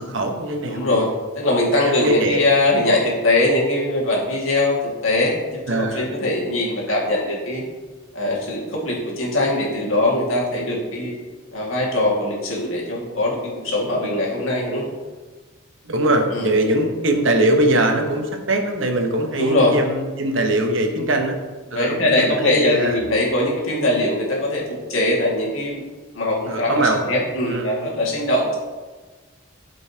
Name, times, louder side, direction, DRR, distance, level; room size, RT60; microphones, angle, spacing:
voice 1, 0.0-1.0 1.8-2.4 5.7-6.1 15.9-21.4 21.7-23.0 26.5-27.1 27.4-27.8, right 1 dB, 70° right, 3 dB, 1.0 m, -21 dB
voice 2, 0.6-7.6 8.1-11.1 11.5-14.8 16.3-16.5 19.4-19.8 21.7-24.6 24.9-25.8 26.1-26.8 27.1-28.6, left 1 dB, 80° left, -3 dB, 2.0 m, -21 dB
12.0 x 5.3 x 2.8 m, 1.3 s
head